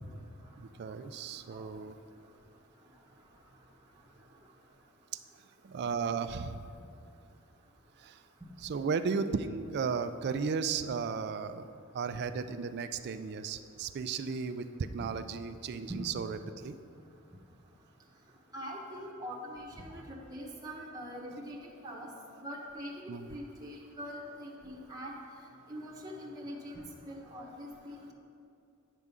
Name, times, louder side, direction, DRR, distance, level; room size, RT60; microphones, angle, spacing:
voice 1, 0.6-1.9 5.6-6.6 8.0-8.2 8.6-14.7 14.9-16.8 23.1-23.3, right 5 dB, 50° right, 10 dB, 0.3 m, -35 dB
voice 2, 18.5-21.6 21.8-22.1 22.4-22.9 23.3-25.1 25.7-28.1, equal, 15° right, -4 dB, 0.9 m, -43 dB
9.1 x 3.6 x 6.7 m, 2.5 s
head